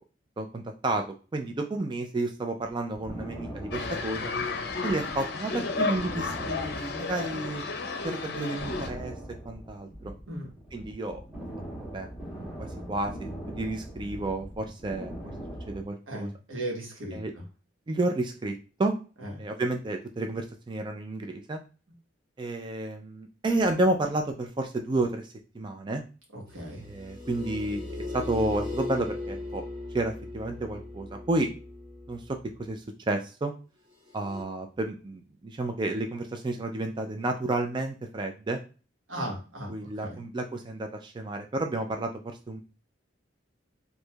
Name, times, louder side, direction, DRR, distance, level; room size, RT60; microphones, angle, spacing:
voice 1, 0.4-4.3 4.8-7.6 8.0-9.1 9.5-10.1 10.7-11.2 11.9-12.1 12.3-15.1 15.7-16.3 17.1-17.3 17.9-19.0 19.4-21.6 22.4-26.0 26.8-29.6 29.9-31.5 32.1-33.5 34.1-38.6 39.7-42.6, right 2 dB, 25° right, 4 dB, 0.3 m, -31 dB
sound 1, 3.0-5.2 5.5-5.6 5.9-7.6 8.0-8.1 8.6-15.8, right 1 dB, 10° right, 1.1 m, -41 dB
sound 2, 3.7-8.9, left 4 dB, 55° left, 0.6 m, -32 dB
voice 2, 16.1-17.2 19.2-19.3 26.3-26.9 39.1-40.2, right 1 dB, 85° right, -1 dB, 1.3 m, -36 dB
sound 3, 26.5-32.5 34.1-34.4, left 2 dB, 45° right, 1.7 m, -38 dB
4.5 x 2.6 x 2.3 m, 0.34 s
head